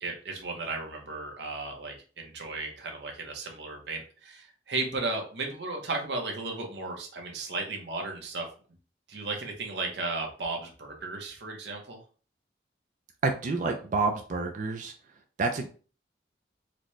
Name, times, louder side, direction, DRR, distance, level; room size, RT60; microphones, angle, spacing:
voice 1, 0.0-8.5 9.1-12.0, right 3 dB, 80° right, 2 dB, 0.8 m, -35 dB
voice 2, 13.2-14.9 15.4-15.7, right 3 dB, 45° right, 3 dB, 0.4 m, -28 dB
4.0 x 2.2 x 3.1 m, 0.38 s
head